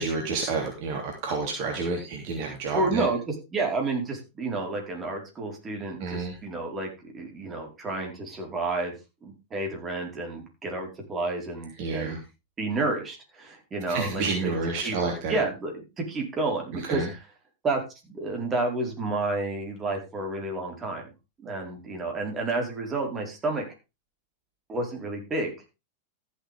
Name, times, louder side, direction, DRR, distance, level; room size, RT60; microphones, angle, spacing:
voice 1, 0.0-3.1 6.0-6.4 11.8-12.2 13.9-15.4 16.9-17.1, right 4 dB, 45° right, 2 dB, 3.1 m, -29 dB
voice 2, 2.7-8.9 9.2-12.2 12.6-15.0 15.3-17.2 17.6-21.1 21.4-23.6 24.7-25.5, right 2 dB, 20° right, 1 dB, 4.8 m, -30 dB
14.0 x 8.4 x 3.7 m, 0.27 s
figure-of-eight pair, 90°, 0 cm